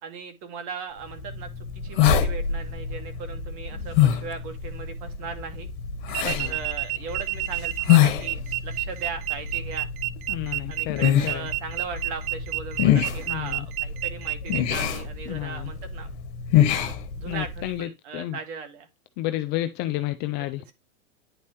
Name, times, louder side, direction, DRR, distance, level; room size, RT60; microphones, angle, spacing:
voice 1, 0.0-5.7 6.2-9.9 10.7-16.1 17.2-18.9 20.4-20.7, right 5 dB, 50° right, 2.1 m, -38 dB
sound 1, 1.1-17.7, left 10 dB, 55° left, 1.6 m, -26 dB
sound 2, 6.1-14.6, right 19 dB, 90° right, 0.6 m, -30 dB
voice 2, 10.3-11.5 13.3-13.6 15.3-15.7 17.3-17.9 18.1-18.4 19.2-20.7, left 15 dB, 25° left, 0.3 m, -30 dB
10.0 x 4.2 x 3.0 m
hypercardioid pair, 120°, 42 cm